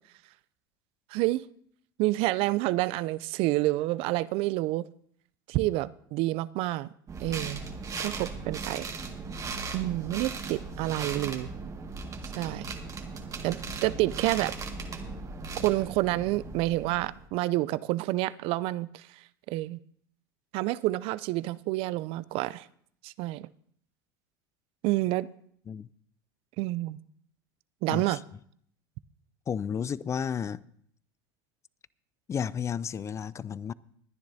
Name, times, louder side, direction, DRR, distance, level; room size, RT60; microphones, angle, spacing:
voice 1, 1.1-1.4 2.0-4.9 5.5-6.9 7.2-7.6 8.0-8.9 9.7-11.5 12.3-12.8 13.4-14.5 15.6-19.1 19.5-19.8 20.5-22.7 23.0-23.5 24.8-25.3 26.6-27.0 27.8-28.2, right 18 dB, 55° right, 0.4 m, -28 dB
sound 1, 7.1-17.3, right 4 dB, 30° right, 1.8 m, -38 dB
voice 2, 27.9-28.2 29.5-30.7 32.3-33.7, left 7 dB, 25° left, 0.4 m, -32 dB
20.5 x 10.5 x 2.7 m
hypercardioid pair, 85°, 11 cm